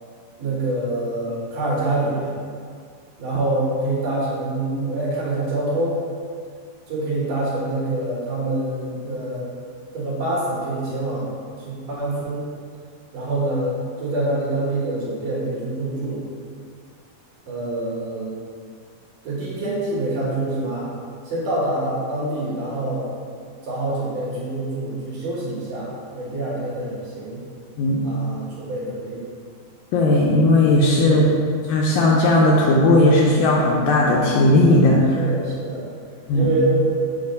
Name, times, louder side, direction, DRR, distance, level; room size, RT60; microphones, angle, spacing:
voice 1, 0.4-2.4 3.2-6.0 6.9-9.5 9.9-11.3 11.6-12.5 13.1-16.2 17.5-18.3 19.2-20.9 21.2-23.1 23.6-27.4 28.0-29.3 31.0-31.3 35.2-35.8 36.3-36.9, right 2 dB, 65° right, -7 dB, 2.6 m, -26 dB
voice 2, 29.9-31.3 31.7-35.2 36.3-36.5, left 1 dB, 80° left, -3 dB, 2.0 m, -16 dB
7.2 x 2.5 x 5.3 m, 2.2 s
omnidirectional pair, 4.3 m